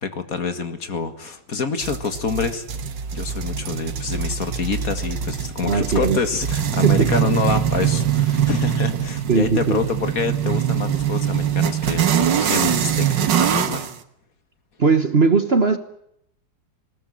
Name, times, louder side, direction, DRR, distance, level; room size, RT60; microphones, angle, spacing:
voice 1, 0.0-2.6 3.1-13.8, left 5 dB, 50° left, 2.2 m, -27 dB
sound 1, 1.8-13.9, right 9 dB, 75° right, 2.0 m, -23 dB
voice 2, 5.6-6.2 6.8-7.1 9.3-9.8 14.8-15.8, right 4 dB, 40° right, 1.3 m, -18 dB
20.5 x 18.5 x 9.9 m
omnidirectional pair, 2.0 m